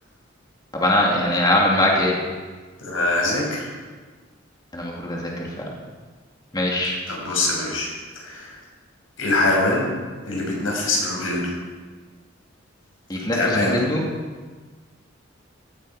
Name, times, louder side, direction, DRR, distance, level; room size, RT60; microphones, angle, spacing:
voice 1, 0.7-2.2 4.7-5.7 6.5-7.0 13.1-14.0, left 1 dB, 20° left, -2 dB, 2.3 m, -21 dB
voice 2, 2.8-3.7 7.1-7.9 8.1-8.6 9.2-9.9 10.3-11.5 13.3-13.8, left 2 dB, 85° left, -2 dB, 6.5 m, -23 dB
16.5 x 14.5 x 4.9 m, 1.4 s
head